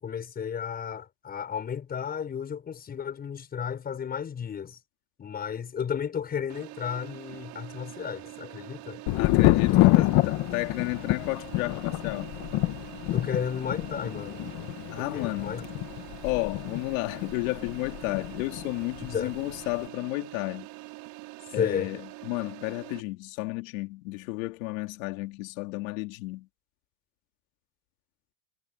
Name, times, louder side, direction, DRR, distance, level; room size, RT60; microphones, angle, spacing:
voice 1, 0.0-4.8 5.2-9.0 10.0-10.1 13.1-14.5 15.0-15.6 19.1-19.3 21.6-21.9, left 7 dB, 20° left, 5.9 m, -33 dB
sound 1, 6.5-23.0, right 23 dB, 55° right, 6.6 m, -44 dB
voice 2, 9.1-12.4 14.9-15.6 16.2-20.7 21.5-26.5, left 23 dB, 75° left, 2.9 m, -32 dB
Thunder, 9.1-18.7 19.0-19.7, left 18 dB, 50° left, 1.7 m, -27 dB
cardioid pair, 160°, 42 cm